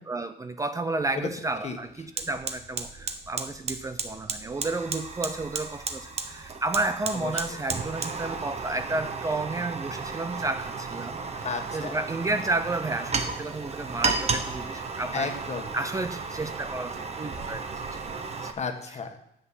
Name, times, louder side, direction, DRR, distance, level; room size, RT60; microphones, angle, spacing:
voice 1, 0.1-11.2 11.7-15.3 15.7-17.6 17.9-18.5 18.9-19.2, right 2 dB, 20° right, 9 dB, 0.5 m, -32 dB
Fire, 1.0-1.2 1.5-18.5, right 4 dB, 35° right, 1.2 m, -34 dB
sound 1, 2.2-18.3, right 3 dB, 90° right, 4.5 m, -50 dB
voice 2, 11.4-11.9 15.1-15.7 18.6-19.2, left 5 dB, 40° left, 5 dB, 1.5 m, -33 dB
9.8 x 8.0 x 7.7 m, 0.79 s
cardioid pair, 135°, 18 cm